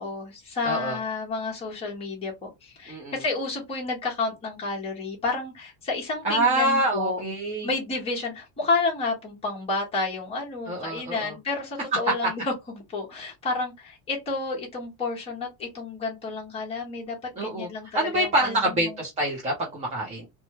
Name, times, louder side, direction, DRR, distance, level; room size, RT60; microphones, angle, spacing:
voice 1, 0.0-7.2 7.6-12.5 12.9-19.0, left 3 dB, 15° left, -4 dB, 1.1 m, -30 dB
voice 2, 0.6-1.0 2.9-3.2 6.2-7.7 10.7-11.3 17.4-17.7 17.9-20.3, right 1 dB, 15° right, -2 dB, 0.5 m, -26 dB
2.9 x 2.2 x 2.9 m, 0.21 s
cardioid pair, 180°, 40 cm